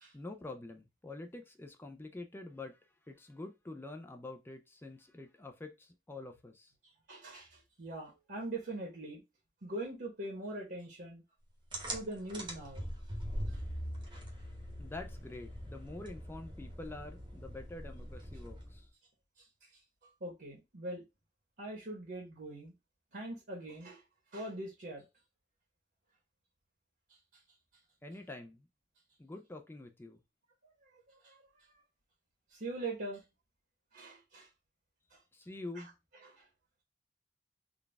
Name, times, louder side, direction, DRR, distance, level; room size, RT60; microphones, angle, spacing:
voice 1, 0.1-2.8 3.1-6.7 14.8-18.9 28.0-28.7 29.2-30.2 35.3-35.9, left 2 dB, 10° left, 0.4 m, -46 dB
voice 2, 7.1-9.2 9.6-11.2 11.9-12.8 20.2-21.0 21.6-22.7 23.1-24.0 24.3-25.0 31.2-31.4 32.5-33.2 33.9-34.5 35.1-35.2 35.7-35.8 36.2-36.4, right 2 dB, 60° right, 1.1 m, -42 dB
sound 1, 11.7-18.9, equal, 25° right, 0.9 m, -42 dB
3.9 x 2.3 x 3.3 m
head